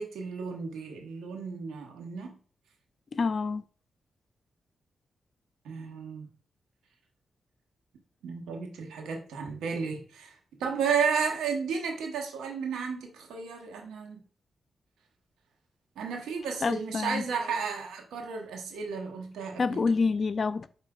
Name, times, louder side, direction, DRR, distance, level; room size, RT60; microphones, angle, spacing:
voice 1, 0.0-2.4 5.6-6.3 8.2-10.3 10.6-14.2 16.0-20.0, right 5 dB, 85° right, 1.0 m, -33 dB
voice 2, 3.1-3.6 16.6-17.2 19.6-20.7, left 4 dB, 55° left, 0.4 m, -27 dB
5.2 x 4.4 x 2.3 m
supercardioid pair, 40°, 0 cm